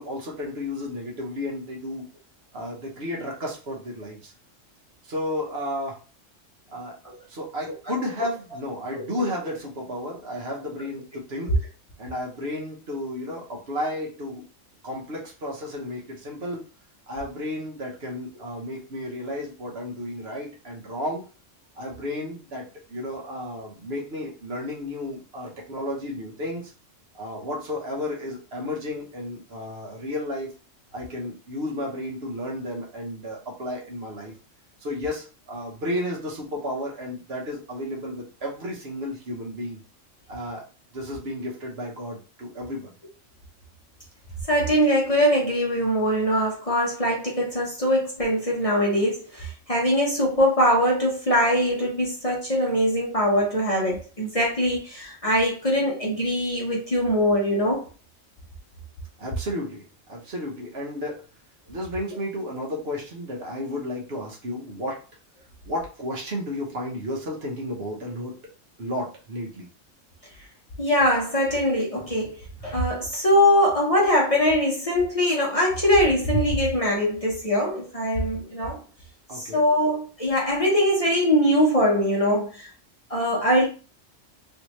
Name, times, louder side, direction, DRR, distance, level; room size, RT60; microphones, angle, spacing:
voice 1, 0.0-2.0 2.5-4.3 5.0-6.0 6.7-7.0 7.3-11.5 12.0-14.4 14.8-16.6 17.1-21.2 21.7-26.7 27.1-30.5 30.9-34.3 34.8-39.8 40.3-40.6 40.9-42.9 59.2-59.8 60.1-61.3 61.7-65.0 65.6-68.4 68.8-69.7 79.3-79.6, left 1 dB, 55° right, 1.2 m, -32 dB
voice 2, 44.5-57.9 70.8-78.8 79.4-82.7 83.1-83.7, equal, 30° left, 0.8 m, -22 dB
3.2 x 2.7 x 3.0 m
omnidirectional pair, 1.3 m